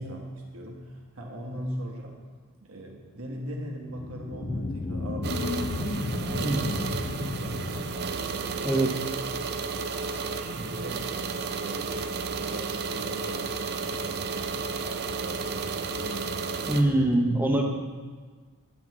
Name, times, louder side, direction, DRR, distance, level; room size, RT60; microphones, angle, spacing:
voice 1, 0.0-2.1 2.6-5.9 6.2-7.9 8.3-8.8 10.2-11.1 11.6-17.1, right 1 dB, 70° right, 0 dB, 1.3 m, -40 dB
sound 1, 3.9-8.9, left 3 dB, 30° left, 0.3 m, -33 dB
sound 2, 5.2-16.8, right 4 dB, 45° right, 0.4 m, -32 dB
voice 2, 16.7-17.6, right 1 dB, 10° right, 2 dB, 0.7 m, -23 dB
9.2 x 7.7 x 3.1 m, 1.5 s
head